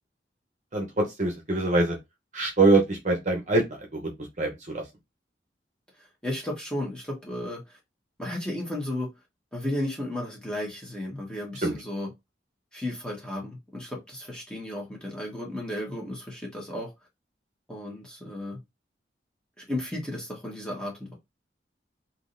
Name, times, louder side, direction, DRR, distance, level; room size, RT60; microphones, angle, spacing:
voice 1, 0.7-2.0 2.3-4.1 4.4-4.8 11.6-11.7, right 2 dB, 45° right, 0.8 m, -24 dB
voice 2, 6.2-7.6 8.2-9.1 9.5-12.1 12.7-16.9 17.7-18.6 19.6-21.1, left 1 dB, 5° left, 1.3 m, -34 dB
3.7 x 2.7 x 2.6 m
head